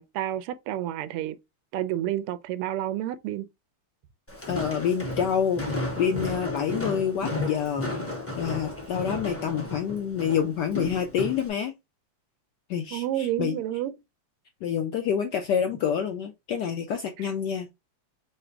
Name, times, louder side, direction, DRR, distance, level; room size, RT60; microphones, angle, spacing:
voice 1, 0.0-1.4 1.7-3.5 12.9-13.9, right 13 dB, 90° right, 1.5 m, -30 dB
Walk footsteps, 4.3-11.5, left 2 dB, 15° left, 0.4 m, -33 dB
voice 2, 4.5-5.7 6.0-7.9 8.4-11.7 12.7-13.6 14.6-17.7, left 8 dB, 75° left, 0.9 m, -27 dB
5.0 x 2.1 x 4.4 m
omnidirectional pair, 2.4 m